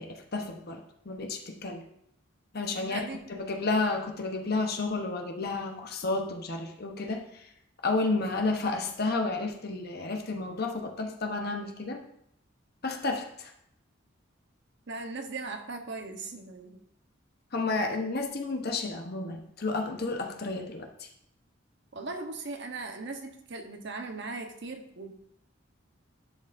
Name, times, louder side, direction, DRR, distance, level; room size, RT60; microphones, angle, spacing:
voice 1, 0.0-1.8 2.5-3.0 3.3-7.4 7.8-12.0 12.8-13.5 17.5-21.1, left 3 dB, 55° left, 3 dB, 1.0 m, -31 dB
voice 2, 2.8-3.2 14.9-16.8 21.9-25.1, right 3 dB, 65° right, 4 dB, 1.0 m, -38 dB
11.0 x 6.3 x 2.6 m, 0.75 s
head